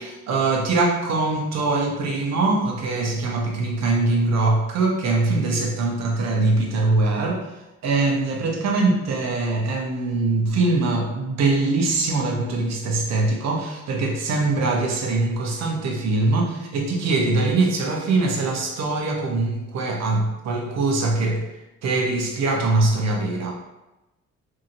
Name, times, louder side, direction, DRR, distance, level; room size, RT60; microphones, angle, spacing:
voice 1, 0.0-7.4 7.8-21.4 21.8-23.5, right 3 dB, 65° right, 1 dB, 0.7 m, -22 dB
2.7 x 2.7 x 2.5 m, 0.99 s
cardioid pair, 90°, 29 cm